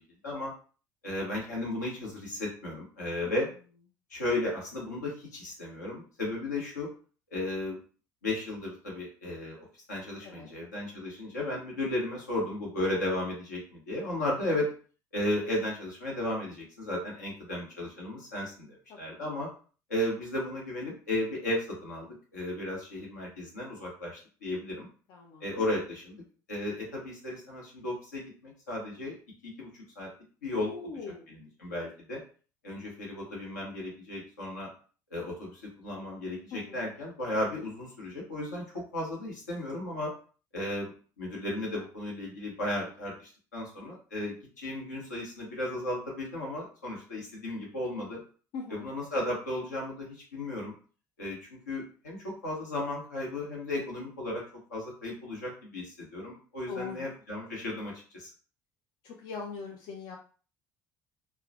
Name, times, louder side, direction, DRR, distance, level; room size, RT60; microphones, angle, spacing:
voice 1, 1.0-3.5 4.1-6.9 7.3-7.8 8.2-14.7 15.1-19.5 19.9-24.9 25.4-26.2 26.5-29.2 29.4-29.7 30.0-30.1 30.4-30.7 31.3-32.2 32.6-34.7 35.1-40.1 40.5-48.2 48.7-50.7 51.2-54.4 54.7-58.3, left 1 dB, 75° left, -3 dB, 0.8 m, -34 dB
voice 2, 18.9-19.4 25.1-25.6 30.7-31.3 36.5-36.9 48.5-48.9 56.7-57.1 59.0-60.2, left 5 dB, 50° left, 1 dB, 0.4 m, -41 dB
2.3 x 2.0 x 2.6 m, 0.39 s
figure-of-eight pair, 55°, 9 cm